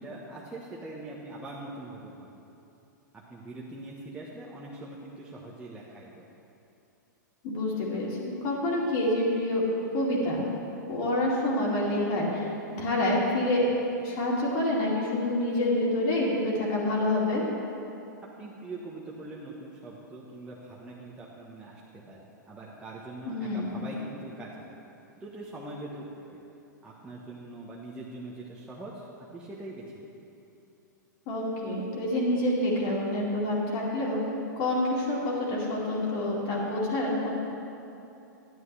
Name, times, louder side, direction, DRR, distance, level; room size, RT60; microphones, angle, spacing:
voice 1, 0.0-2.3 3.1-6.3 18.4-24.8 25.2-26.4 26.8-29.0 29.3-30.1, right 2 dB, 10° right, -6 dB, 1.2 m, -42 dB
voice 2, 7.4-9.6 9.9-10.5 10.9-12.5 12.8-13.6 14.0-17.4 23.3-23.7 31.3-34.2 34.6-37.3, left 1 dB, 45° left, -4 dB, 2.4 m, -27 dB
11.0 x 10.5 x 3.4 m, 2.8 s
hypercardioid pair, 110°, 11 cm